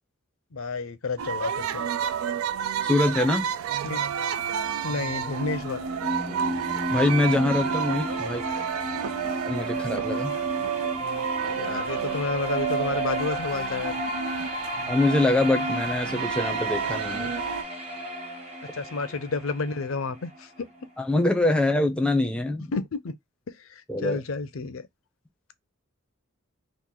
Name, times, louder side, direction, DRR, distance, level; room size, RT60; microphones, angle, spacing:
voice 1, 0.5-1.9 3.8-4.0 4.8-5.9 10.6-10.9 11.4-13.9 18.6-20.7 22.7-23.1 23.5-24.9, left 4 dB, 70° left, 0.6 m, -31 dB
sound 1, 1.2-17.6, right 7 dB, 80° right, 0.3 m, -30 dB
voice 2, 2.8-3.5 6.9-8.4 9.5-10.4 14.9-17.3 21.0-22.7 23.9-24.2, left 2 dB, 5° left, 0.6 m, -24 dB
sound 2, 4.9-20.8, equal, 30° right, 1.2 m, -34 dB
3.0 x 2.5 x 3.7 m
head